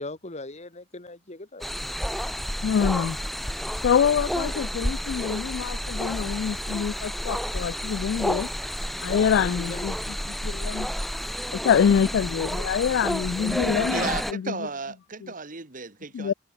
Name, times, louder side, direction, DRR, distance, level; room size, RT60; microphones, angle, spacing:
voice 1, 0.0-1.7 9.3-9.8, left 2 dB, 40° left, 2.3 m, -39 dB
sound 1, 1.6-14.3, equal, ahead, 0.3 m, -30 dB
voice 2, 2.6-3.2 3.8-8.5 9.0-10.9 11.5-14.7 15.2-15.3 16.1-16.3, left 7 dB, 80° left, 0.3 m, -25 dB
voice 3, 13.9-16.3, right 4 dB, 45° right, 1.9 m, -34 dB
head